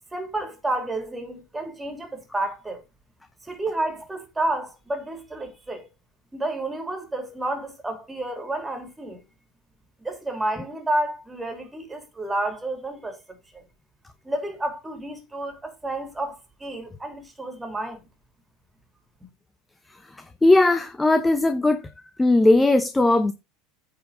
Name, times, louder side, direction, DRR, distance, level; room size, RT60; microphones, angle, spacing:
voice 1, 0.1-2.8 3.5-5.9 6.3-9.2 10.0-13.6 14.2-18.0 19.2-19.3, right 2 dB, 10° right, 3.1 m, -30 dB
voice 2, 20.4-21.8 22.2-23.3, left 2 dB, 10° left, 0.8 m, -18 dB
9.1 x 4.8 x 4.9 m
hypercardioid pair, 80°, 0 cm